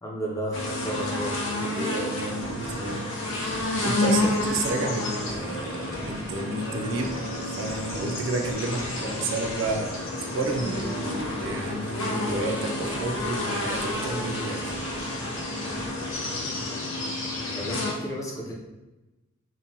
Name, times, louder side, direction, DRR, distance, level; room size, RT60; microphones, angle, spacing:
voice 1, 0.0-1.4 17.6-18.5, equal, 15° left, -3 dB, 0.5 m, -32 dB
sound 1, 0.5-17.9, left 2 dB, 85° left, 0.6 m, -30 dB
voice 2, 1.6-14.8, right 2 dB, 70° right, 2 dB, 0.4 m, -31 dB
sound 2, 2.4-16.4, equal, 85° right, 1.1 m, -44 dB
Chink clink, 6.6-10.8, right 9 dB, 60° left, 1.0 m, -47 dB
3.0 x 2.1 x 2.6 m, 1.1 s
head